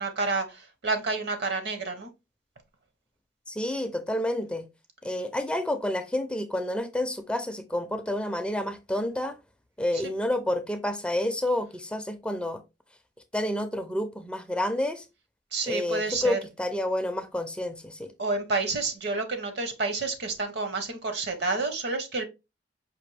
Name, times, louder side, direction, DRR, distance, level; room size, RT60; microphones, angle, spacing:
voice 1, 0.0-2.1 9.9-10.0 15.5-16.4 18.2-22.2, right 3 dB, 60° right, 0.9 m, -29 dB
voice 2, 3.5-4.6 5.0-9.4 9.8-12.6 13.3-15.0 15.7-18.1, left 1 dB, 5° left, 0.4 m, -29 dB
5.0 x 2.6 x 3.2 m
head